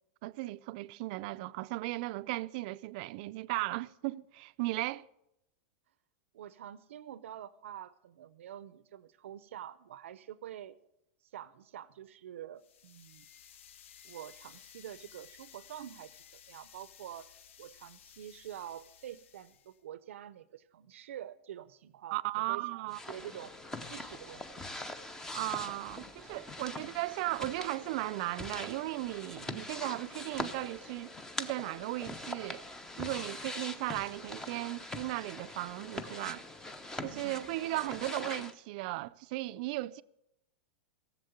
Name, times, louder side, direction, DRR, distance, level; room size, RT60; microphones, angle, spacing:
voice 1, 0.2-5.1 22.1-23.0 25.3-32.7 33.0-36.4 37.0-40.0, right 19 dB, 45° right, 0.4 m, -36 dB
voice 2, 6.3-10.8 11.2-13.3 14.0-22.2 22.5-23.5 23.9-24.8 26.8-27.0 37.1-37.9, right 11 dB, 85° right, 0.6 m, -47 dB
sound 1, 12.6-19.8, left 9 dB, 80° left, 0.7 m, -56 dB
sound 2, 22.9-38.5, left 2 dB, 10° left, 0.6 m, -43 dB
17.0 x 7.4 x 7.9 m
supercardioid pair, 165°, 7 cm